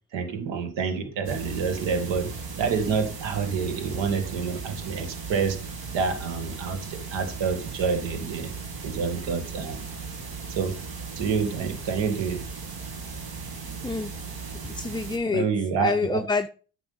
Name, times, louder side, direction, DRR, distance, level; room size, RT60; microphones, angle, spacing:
voice 1, 0.1-2.3 2.6-5.6 5.9-8.5 8.8-9.9 10.5-10.8 11.2-12.4 15.3-16.2, right 5 dB, 85° right, 1.8 m, -28 dB
sound 1, 1.2-15.2, right 4 dB, 55° right, 2.4 m, -37 dB
voice 2, 13.8-14.2 14.7-15.5 15.7-16.5, left 4 dB, 10° left, 0.6 m, -27 dB
9.4 x 6.0 x 5.5 m
supercardioid pair, 65°, 43 cm